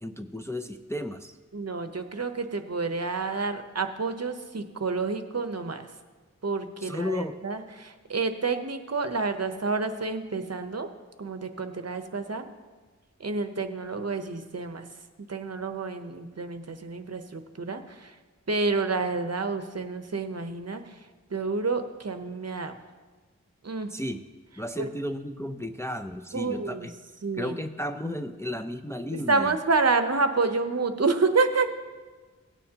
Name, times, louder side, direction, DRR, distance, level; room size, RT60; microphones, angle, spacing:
voice 1, 0.0-1.3 6.8-7.4 23.9-24.2 24.6-26.8 27.4-29.6, left 1 dB, 10° left, 6 dB, 0.5 m, -33 dB
voice 2, 1.5-5.9 6.4-10.9 11.2-12.5 13.2-14.8 15.3-18.2 18.5-22.8 23.6-23.9 24.8-24.9 26.3-26.9 27.2-27.6 29.1-31.7, right 4 dB, 60° right, 8 dB, 0.8 m, -29 dB
17.5 x 9.1 x 2.9 m, 1.4 s
wide cardioid pair, 60°, 30 cm